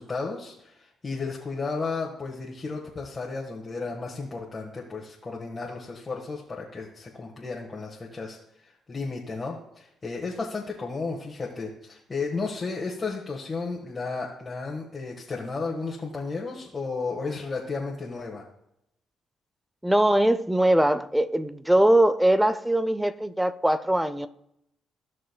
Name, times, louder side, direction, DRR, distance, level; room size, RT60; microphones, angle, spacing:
voice 1, 0.0-8.4 8.6-18.5, left 4 dB, 30° left, 1.5 m, -33 dB
voice 2, 19.8-24.3, right 1 dB, 5° right, 0.5 m, -21 dB
15.5 x 6.3 x 2.3 m
cardioid pair, 90°, 0 cm